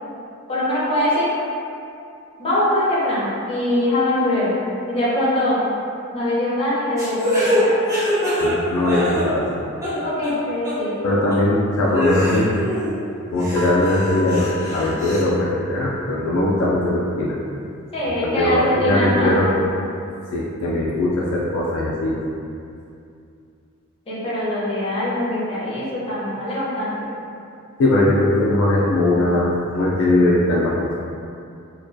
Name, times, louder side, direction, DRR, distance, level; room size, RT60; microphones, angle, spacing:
voice 1, 0.5-1.3 2.4-4.6 4.9-5.6 6.1-7.8 9.8-11.1 17.9-19.6 24.1-26.9, left 1 dB, 25° left, -8 dB, 0.6 m, -22 dB
sound 1, 7.0-9.5 9.8-10.4 10.6-10.7 11.3-11.4 11.9-12.9 13.3-15.2, left 1 dB, 15° right, 0.9 m, -24 dB
voice 2, 8.4-9.4 11.0-12.5 13.3-17.4 18.2-19.6 20.3-22.2 27.8-29.5 29.7-30.7, left 1 dB, 65° left, -5 dB, 0.3 m, -20 dB
sound 2, 13.6-16.3, left 3 dB, 85° right, 0.3 m, -34 dB
2.2 x 2.2 x 2.5 m, 2.5 s
head